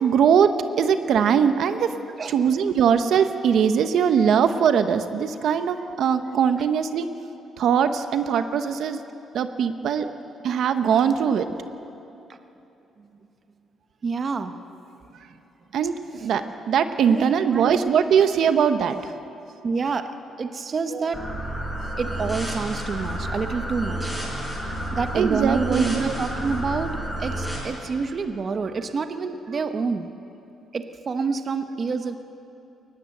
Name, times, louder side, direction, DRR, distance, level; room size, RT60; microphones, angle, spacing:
voice 1, 0.0-1.9 2.3-7.1 7.6-9.0 9.3-10.1 10.4-11.5 15.7-15.9 16.2-19.1 25.1-26.0, right 7 dB, 60° right, 9 dB, 0.9 m, -21 dB
voice 2, 2.2-2.5 10.0-10.1 13.0-13.1 14.0-14.5 16.1-16.3 17.0-17.8 19.6-20.1 20.4-21.3 22.0-24.1 24.9-30.1 30.7-32.2, right 4 dB, 30° right, 8 dB, 0.9 m, -28 dB
sound 1, 21.1-27.6, right 1 dB, ahead, 5.4 m, -30 dB
22.5 x 19.5 x 7.8 m, 2.9 s
cardioid pair, 160°, 0 cm